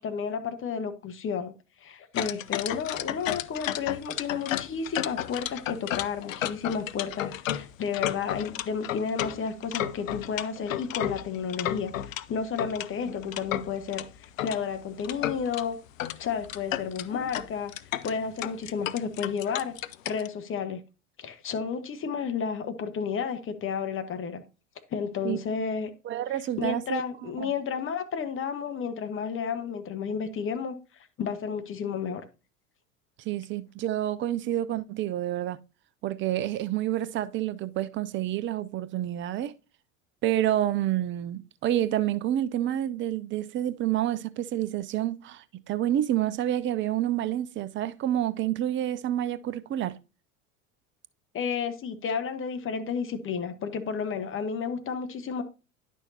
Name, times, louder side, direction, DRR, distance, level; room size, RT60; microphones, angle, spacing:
voice 1, 0.0-1.5 1.8-15.8 16.2-17.7 18.0-19.7 20.0-20.8 21.2-24.4 24.9-25.9 26.6-32.2 51.3-55.4, left 6 dB, 30° left, 1.2 m, -32 dB
sound 1, 2.2-12.2 12.6-14.6 15.0-15.6 16.0-16.2 16.4-20.3, left 12 dB, 75° left, 0.6 m, -33 dB
voice 2, 26.0-27.5 33.2-35.6 36.0-39.5 40.2-50.0, right 12 dB, 30° right, 0.5 m, -28 dB
10.0 x 6.2 x 2.8 m
figure-of-eight pair, 75°, 40 cm